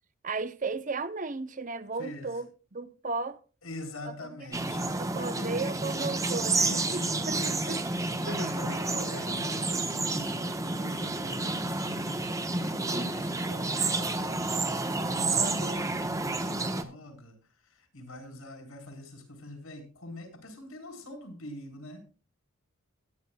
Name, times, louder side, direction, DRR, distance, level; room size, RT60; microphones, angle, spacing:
voice 1, 0.2-3.4 4.0-4.1 5.0-7.8 8.3-8.7 15.4-15.9, right 3 dB, 35° right, 0.7 m, -35 dB
voice 2, 2.0-2.3 3.6-5.7 6.6-7.8 8.2-10.5 10.8-17.4 17.7-22.0, left 1 dB, 85° left, 4.3 m, -43 dB
sound 1, 4.5-16.8, right 2 dB, 15° right, 1.0 m, -30 dB
22.0 x 9.9 x 2.3 m
head